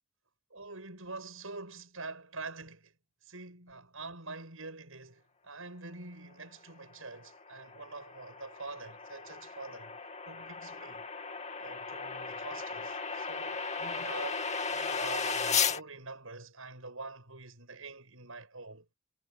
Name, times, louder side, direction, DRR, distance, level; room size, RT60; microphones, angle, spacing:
voice 1, 0.5-2.9 3.2-10.0 10.3-11.1 11.6-18.9, right 3 dB, 70° right, 7.6 m, -45 dB
sound 1, 7.1-15.8, left 5 dB, 30° left, 2.4 m, -35 dB
head